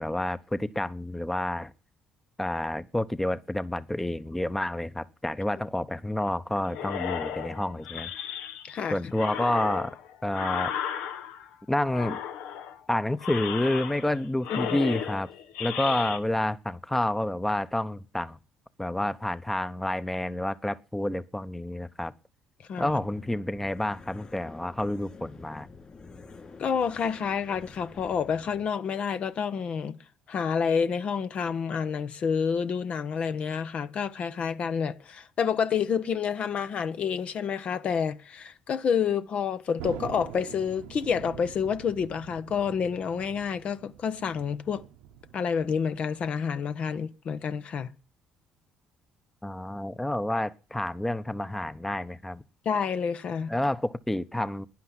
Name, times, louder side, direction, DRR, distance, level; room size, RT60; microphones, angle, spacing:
voice 1, 0.0-1.7 2.4-8.1 8.9-10.0 10.2-10.7 11.7-12.2 12.9-15.3 15.6-18.4 18.8-22.1 22.8-25.7 49.4-52.4 53.5-54.7, left 1 dB, 10° left, 0.9 m, -29 dB
sound 1, 6.7-8.8 9.1-11.5 11.9-12.8 13.2-14.2 14.4-16.2, left 9 dB, 80° left, 1.4 m, -34 dB
voice 2, 8.6-8.9 14.5-14.8 22.7-22.9 26.6-30.0 30.3-44.8 45.3-47.9 52.6-53.5, left 6 dB, 55° left, 1.0 m, -29 dB
sound 2, 22.9-28.7, left 4 dB, 35° left, 4.9 m, -49 dB
Thunder, 39.8-46.6, right 10 dB, 85° right, 1.1 m, -44 dB
11.5 x 10.5 x 9.7 m
supercardioid pair, 65°, 2 cm